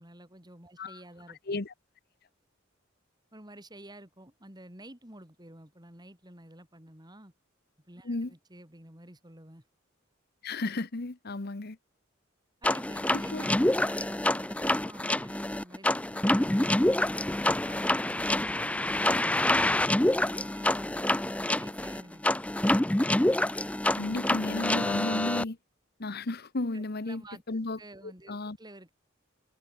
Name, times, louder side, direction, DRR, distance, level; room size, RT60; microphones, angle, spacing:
voice 1, 0.0-1.4 3.3-7.3 7.9-9.6 12.6-17.1 17.6-19.6 20.1-22.6 26.7-27.4 27.8-28.9, right 1 dB, 20° right, 5.6 m, -50 dB
voice 2, 10.4-11.8 13.1-13.4 24.0-25.6 26.0-27.2 27.5-27.8 28.3-28.6, left 2 dB, 55° left, 1.1 m, -33 dB
sound 1, 12.6-25.4, left 1 dB, 5° left, 0.5 m, -27 dB
head